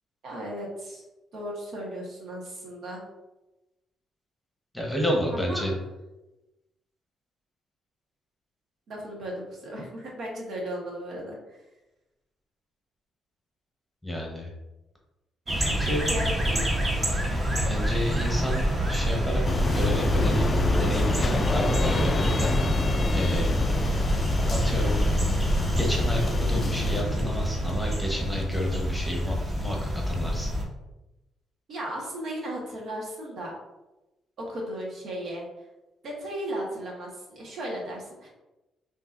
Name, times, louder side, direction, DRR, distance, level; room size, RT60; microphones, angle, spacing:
voice 1, 0.2-1.0 1.3-3.0 5.3-5.7 8.9-11.6 16.1-16.6 17.3-17.6 31.7-33.5 34.4-35.5 36.0-38.3, right 1 dB, 65° right, -2 dB, 1.3 m, -36 dB
voice 2, 4.7-5.7 14.0-14.5 15.6-16.1 16.4-16.7 17.6-19.4 19.7-22.5 23.1-23.6 24.5-25.0 25.8-30.5, equal, 5° left, -1 dB, 1.0 m, -30 dB
sound 1, 15.5-30.7, equal, 30° right, 1.0 m, -26 dB
sound 2, 19.4-27.0, left 3 dB, 35° left, 0.3 m, -28 dB
5.3 x 2.9 x 2.5 m, 1.0 s
cardioid pair, 90°, 0 cm